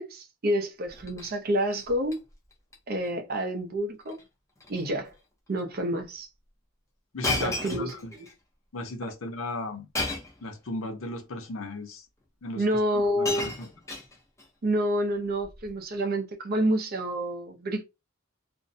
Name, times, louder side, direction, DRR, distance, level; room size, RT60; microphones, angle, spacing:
voice 1, 0.0-2.2 2.9-4.2 4.7-5.1 5.5-6.3 7.4-8.3 12.6-13.5 14.6-17.8, right 1 dB, 50° right, 0.5 m, -28 dB
Shatter, 0.9-1.4 1.7-2.2 2.5-2.8 3.0-3.1 4.0-4.2 4.6-4.8 5.6-5.7 7.2-8.3 9.9-10.4 11.4-11.5 12.6-12.7 12.9-14.5 15.4-15.7, left 2 dB, 15° left, 0.6 m, -34 dB
voice 2, 7.1-8.1 8.7-9.9 10.4-12.0 12.4-12.6 12.9-13.7, left 2 dB, 85° left, 0.7 m, -36 dB
2.5 x 2.1 x 2.6 m
head